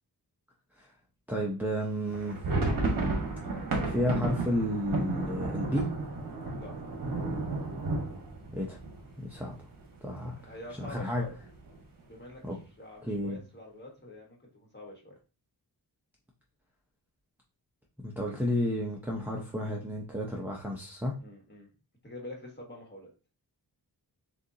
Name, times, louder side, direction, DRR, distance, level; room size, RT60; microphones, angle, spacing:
voice 1, 1.3-2.4 3.9-5.9 8.5-8.8 9.2-9.5 10.0-10.4 10.9-11.2 12.4-12.6 13.0-13.4 18.0-21.1, equal, 5° right, -3 dB, 0.6 m, -31 dB
sound 1, 2.1-9.8 10.1-10.2 10.5-10.7 11.3-11.8, right 3 dB, 55° right, 1.3 m, -32 dB
voice 2, 10.3-11.4 12.1-15.1 21.2-21.7 22.0-23.1, left 1 dB, 25° left, -1 dB, 1.4 m, -46 dB
6.6 x 2.5 x 2.7 m, 0.33 s
wide cardioid pair, 170°, 41 cm